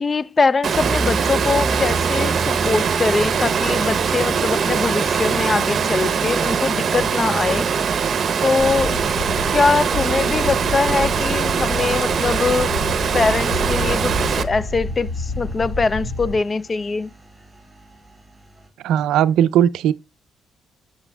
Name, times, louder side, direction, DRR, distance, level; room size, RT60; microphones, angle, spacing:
voice 1, 0.0-7.7 8.4-9.0 9.5-12.7 13.1-17.1, left 4 dB, 30° left, 0.3 m, -22 dB
Water, 0.6-14.4, right 6 dB, 50° right, 0.7 m, -22 dB
Engine, 0.7-18.7, right 2 dB, 5° right, 3.6 m, -34 dB
sound 1, 8.6-16.4, left 2 dB, 55° left, 1.6 m, -29 dB
voice 2, 18.8-19.9, right 10 dB, 85° right, 0.4 m, -17 dB
7.0 x 6.6 x 2.2 m
cardioid pair, 90°, 0 cm